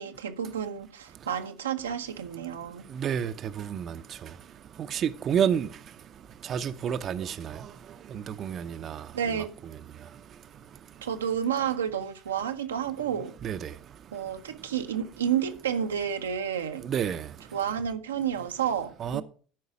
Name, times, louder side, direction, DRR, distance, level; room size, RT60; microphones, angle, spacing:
voice 1, 0.0-2.9 9.1-9.5 11.0-13.3 14.1-16.9 17.5-19.2, right 8 dB, 85° right, 0.7 m, -30 dB
voice 2, 3.0-3.9 4.9-5.7 6.5-7.3 8.3-9.0 13.4-13.7 16.8-17.2 19.0-19.2, right 8 dB, 45° right, 0.6 m, -29 dB
12.0 x 4.7 x 5.8 m
hypercardioid pair, 70°, 0 cm